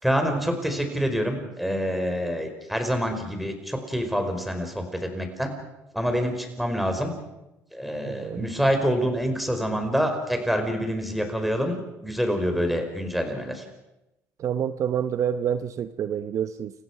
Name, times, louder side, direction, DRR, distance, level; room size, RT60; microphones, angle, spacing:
voice 1, 0.0-5.5 5.9-7.1 7.7-13.7, equal, ahead, 5 dB, 5.2 m, -26 dB
voice 2, 8.1-8.5 14.4-16.7, right 9 dB, 55° right, 12 dB, 0.9 m, -27 dB
30.0 x 16.0 x 6.2 m, 0.93 s
supercardioid pair, 90°, 7 cm